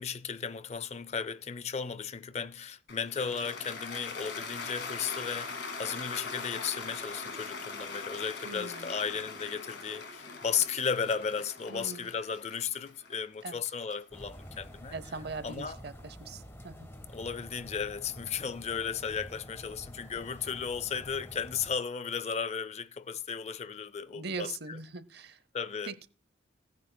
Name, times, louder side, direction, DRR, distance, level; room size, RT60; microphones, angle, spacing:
voice 1, 0.0-14.9 15.4-15.8 17.1-24.8 25.5-25.9, left 6 dB, 35° left, 0.4 m, -35 dB
Cheering / Applause, 2.9-15.1, left 4 dB, 60° left, 2.1 m, -41 dB
voice 2, 8.4-8.9 11.7-12.1 13.4-13.6 14.9-16.9 24.0-25.4 25.8-26.1, right 3 dB, 55° right, 0.7 m, -41 dB
sound 1, 14.1-21.8, equal, 15° left, 1.2 m, -48 dB
18.0 x 9.4 x 2.2 m
head